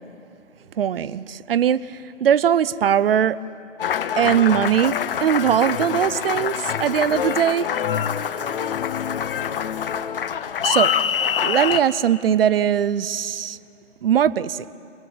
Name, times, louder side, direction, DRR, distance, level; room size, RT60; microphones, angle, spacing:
voice 1, 0.8-3.4 4.2-7.7 10.6-10.9 11.4-13.6 14.0-14.6, right 9 dB, 50° right, 18 dB, 0.7 m, -20 dB
Applause, 3.8-11.8, left 8 dB, 45° left, 0.9 m, -25 dB
27.5 x 21.5 x 7.6 m, 2.6 s
figure-of-eight pair, 135°, 38 cm